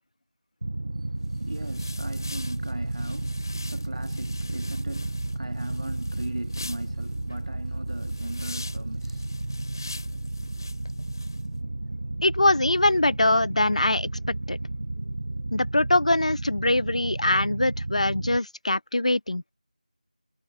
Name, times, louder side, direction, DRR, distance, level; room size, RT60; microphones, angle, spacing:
sound 1, 0.6-18.4, right 2 dB, 35° right, 0.9 m, -33 dB
voice 1, 1.0-9.3, right 2 dB, 50° right, 2.1 m, -39 dB
sound 2, 1.3-11.5, left 3 dB, 30° left, 2.5 m, -43 dB
voice 2, 12.2-14.1 14.5-14.6 15.5-19.4, left 2 dB, 50° left, 0.7 m, -23 dB
figure-of-eight pair, 175°, 4 cm